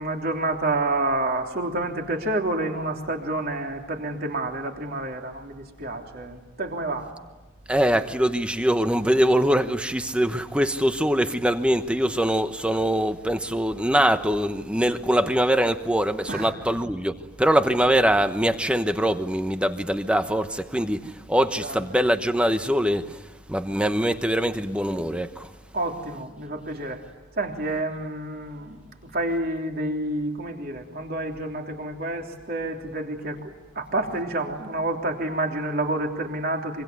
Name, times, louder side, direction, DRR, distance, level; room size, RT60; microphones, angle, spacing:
voice 1, 0.0-7.1 16.3-16.5 21.6-21.8 25.7-27.0 27.4-36.8, right 2 dB, 45° right, 3.3 m, -29 dB
voice 2, 7.7-25.5, equal, 5° right, 1.0 m, -23 dB
25.5 x 25.0 x 9.4 m
head